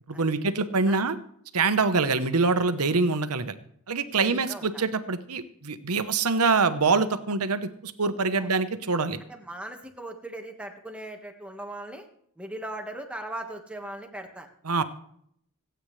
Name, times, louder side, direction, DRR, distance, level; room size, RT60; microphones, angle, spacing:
voice 1, 0.1-1.2 1.5-3.5 3.9-9.2 14.7-14.8, right 4 dB, 80° right, 11 dB, 1.0 m, -25 dB
voice 2, 4.1-4.8 8.4-8.5 9.3-12.1 12.4-14.5, right 1 dB, 5° right, 3 dB, 1.6 m, -39 dB
26.0 x 9.0 x 3.3 m, 0.68 s
head